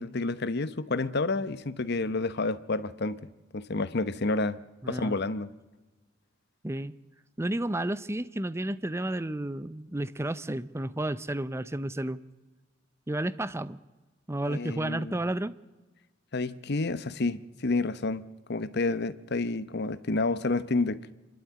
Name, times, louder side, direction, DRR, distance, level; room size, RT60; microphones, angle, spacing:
voice 1, 0.0-3.2 3.5-4.6 4.9-5.5 14.5-15.2 16.3-18.2 18.5-21.0, left 3 dB, 55° left, 0.9 m, -29 dB
voice 2, 4.8-5.1 6.6-6.9 7.4-12.2 13.1-13.8 14.3-15.5, right 1 dB, 15° right, 0.6 m, -31 dB
26.0 x 12.0 x 8.7 m
head